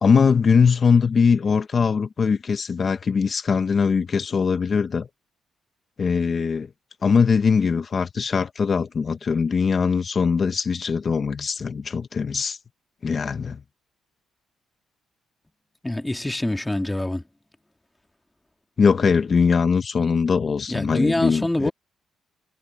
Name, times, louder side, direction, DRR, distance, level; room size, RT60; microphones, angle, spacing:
voice 1, 0.0-5.1 6.0-6.7 7.0-12.6 13.0-13.6 18.8-21.7, left 5 dB, 40° left, 0.9 m, -21 dB
voice 2, 15.8-17.2 20.7-21.7, left 1 dB, 10° left, 2.0 m, -25 dB
cardioid pair, 90°, 0 cm